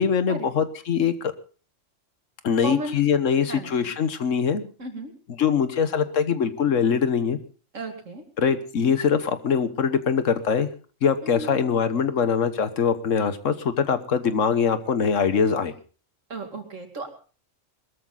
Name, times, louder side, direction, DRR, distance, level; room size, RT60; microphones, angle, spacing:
voice 1, 0.0-1.3 2.4-4.7 5.4-7.4 8.4-10.7 11.0-15.7, left 6 dB, 85° left, 12 dB, 1.5 m, -23 dB
voice 2, 2.6-3.0 3.5-3.9 4.8-5.1 7.7-8.2 11.2-11.6 16.3-17.1, right 2 dB, 80° right, 5 dB, 2.8 m, -34 dB
21.0 x 13.5 x 3.9 m, 0.38 s
omnidirectional pair, 1.3 m